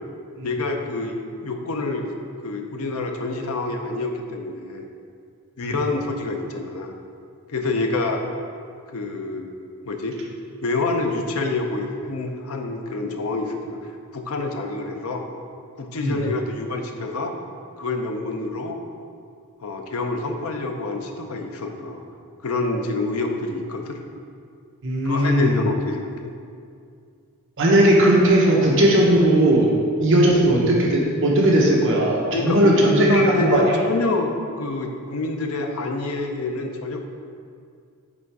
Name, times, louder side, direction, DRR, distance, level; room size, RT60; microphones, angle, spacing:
voice 1, 0.4-2.1 2.4-4.9 5.6-6.9 7.5-8.2 8.9-9.5 9.8-10.2 10.6-13.8 14.1-15.3 15.8-17.3 17.8-18.8 19.6-22.0 22.4-24.0 25.0-26.3 32.3-37.0, left 3 dB, 70° left, 3 dB, 0.7 m, -27 dB
voice 2, 24.8-25.5 27.6-29.7 30.0-33.6, right 1 dB, 60° right, -2 dB, 0.9 m, -17 dB
7.5 x 3.6 x 4.7 m, 2.3 s
head